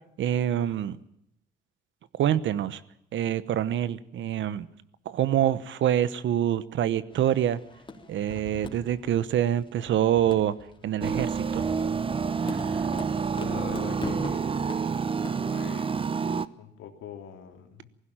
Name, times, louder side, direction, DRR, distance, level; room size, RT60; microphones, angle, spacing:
voice 1, 0.2-1.0 2.1-2.8 3.1-4.7 5.0-7.6 8.1-10.5 10.8-11.7 12.4-12.9, right 11 dB, 70° right, 16 dB, 1.1 m, -26 dB
sound 1, 7.1-15.6, left 3 dB, 25° left, 3.5 m, -42 dB
sound 2, 11.0-16.5, right 5 dB, 25° right, 0.8 m, -28 dB
voice 2, 13.3-14.5 15.5-16.2 16.5-17.9, left 8 dB, 85° left, 4 dB, 2.9 m, -42 dB
19.0 x 16.0 x 9.0 m, 0.80 s
cardioid pair, 90°, 20 cm